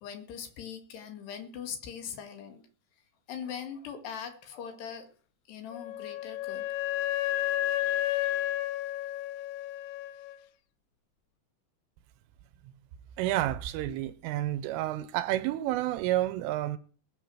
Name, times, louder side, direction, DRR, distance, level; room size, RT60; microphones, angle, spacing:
voice 1, 0.0-2.6 3.3-5.1 5.5-6.7 7.8-8.4, left 7 dB, 65° left, 3.8 m, -41 dB
Wind instrument woodwind instrument, 5.7-10.4, left 13 dB, 90° left, 3.6 m, -31 dB
voice 2, 13.2-16.8, right 14 dB, 90° right, 3.4 m, -30 dB
19.5 x 6.8 x 7.8 m
omnidirectional pair, 5.6 m